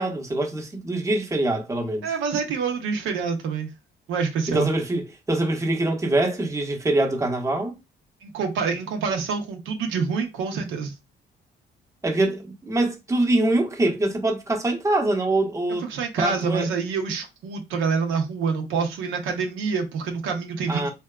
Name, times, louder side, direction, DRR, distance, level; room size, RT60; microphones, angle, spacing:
voice 1, 0.0-2.1 4.5-7.8 12.0-15.8 16.2-16.7 20.7-20.9, right 2 dB, 15° right, 0.7 m, -24 dB
voice 2, 2.0-3.7 4.1-4.7 8.2-10.9 15.8-20.9, right 5 dB, 90° right, 0.6 m, -26 dB
2.8 x 2.3 x 2.2 m
cardioid pair, 90°, 20 cm